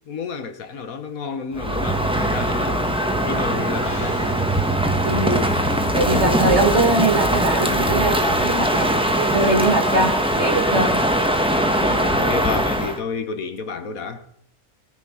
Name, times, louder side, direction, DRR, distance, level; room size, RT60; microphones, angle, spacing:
voice 1, 0.1-4.2 11.8-14.2, left 5 dB, 70° left, 1.6 m, -30 dB
Crow, 1.5-13.0, right 1 dB, 5° right, 1.2 m, -21 dB
sound 1, 3.8-7.3 7.6-7.7, left 1 dB, 50° left, 4.1 m, -46 dB
voice 2, 5.0-5.4 5.9-10.9, right 2 dB, 50° right, 2.7 m, -22 dB
18.5 x 9.8 x 5.6 m
omnidirectional pair, 1.6 m